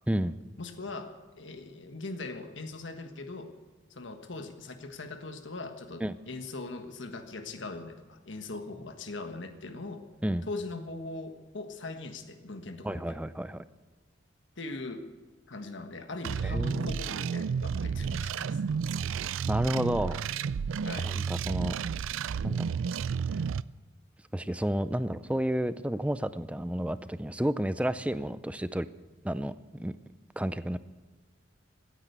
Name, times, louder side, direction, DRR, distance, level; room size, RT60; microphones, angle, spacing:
voice 1, 0.6-3.5 3.9-10.0 10.5-13.2 14.6-15.0 15.5-18.6 20.8-21.1, left 3 dB, 70° left, 7 dB, 1.5 m, -40 dB
voice 2, 12.8-13.6 16.4-17.0 19.5-20.2 21.0-21.8 22.4-22.7 24.3-28.9 29.2-29.9 30.4-30.8, right 1 dB, 5° right, 14 dB, 0.4 m, -31 dB
sound 1, 16.2-23.6, right 6 dB, 90° right, 0.4 m, -31 dB
16.0 x 10.0 x 8.1 m, 1.3 s
head